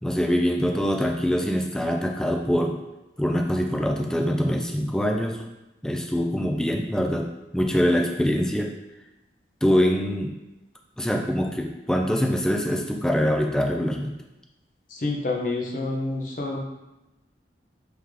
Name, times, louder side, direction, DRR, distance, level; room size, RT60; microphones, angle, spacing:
voice 1, 0.0-2.8 3.2-5.4 5.8-8.7 9.6-10.4 11.0-14.1, equal, 5° left, 2 dB, 0.3 m, -24 dB
voice 2, 14.9-16.6, left 2 dB, 50° left, -1 dB, 0.7 m, -28 dB
3.6 x 3.4 x 3.1 m, 0.98 s
head